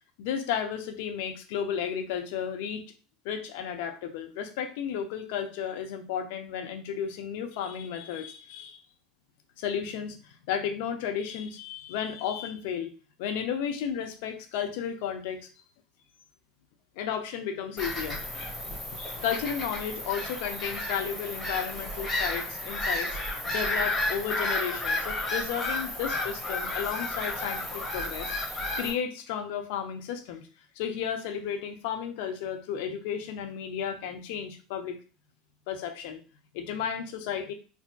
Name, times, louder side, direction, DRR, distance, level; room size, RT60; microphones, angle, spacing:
voice 1, 0.2-2.8 3.2-8.8 9.6-12.9 13.2-15.5 17.0-18.2 19.2-28.3 28.8-30.5 30.8-35.0 35.7-36.2 36.5-37.5, left 8 dB, 60° left, 6 dB, 0.6 m, -33 dB
Bird vocalization bird call bird song / Gull seagull, 17.8-28.9, left 2 dB, 25° left, 1.2 m, -32 dB
4.3 x 2.8 x 2.2 m, 0.35 s
figure-of-eight pair, 75°, 0 cm